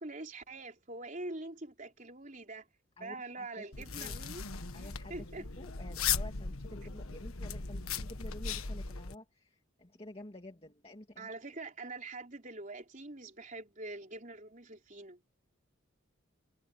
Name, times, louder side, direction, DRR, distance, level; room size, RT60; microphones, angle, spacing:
voice 1, 0.0-2.7 3.0-4.4 5.1-5.4 11.2-15.2, right 2 dB, 35° right, 3.9 m, -44 dB
voice 2, 3.0-3.7 4.0-4.2 4.7-11.3, left 1 dB, 25° left, 2.4 m, -50 dB
sound 1, 3.7-9.2, left 6 dB, 80° left, 1.5 m, -37 dB
head